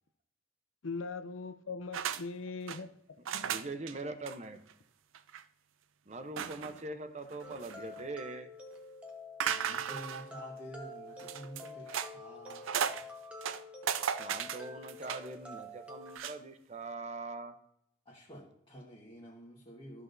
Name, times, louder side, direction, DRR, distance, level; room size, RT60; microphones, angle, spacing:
voice 1, 0.8-3.7, left 4 dB, 80° left, 0.6 m, -41 dB
sound 1, 1.9-2.2 2.5-2.8 3.3-3.9 4.3-4.4 4.7-4.8 5.1-5.4 6.4-6.8 7.3-8.0 9.4-10.3 11.2-12.1 12.5-13.0 13.4-15.3 16.1-16.4, right 8 dB, 80° right, 0.4 m, -36 dB
voice 2, 3.4-4.6 6.1-8.5 14.2-17.6, right 2 dB, 35° right, 0.7 m, -42 dB
sound 2, 7.4-16.2, left 2 dB, 5° right, 0.9 m, -48 dB
voice 3, 9.4-13.1 18.0-20.0, equal, 25° left, 1.4 m, -49 dB
13.0 x 6.0 x 2.6 m
head